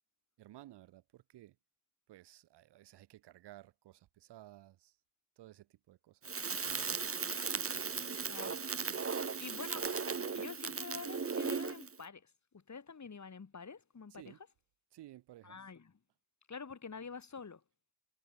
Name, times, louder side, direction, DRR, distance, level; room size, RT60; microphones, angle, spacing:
voice 1, 0.4-1.6 2.1-5.0 5.4-7.3 7.7-8.2 9.1-9.3 14.1-14.4 14.9-15.6, right 14 dB, 85° right, 3.5 m, -57 dB
Crackle, 6.2-11.9, right 5 dB, 35° right, 1.7 m, -37 dB
voice 2, 8.3-8.6 8.9-9.0 9.4-9.9 10.3-14.3 15.4-15.9 16.5-17.6, left 5 dB, 45° left, 5.4 m, -47 dB
supercardioid pair, 55°, 40 cm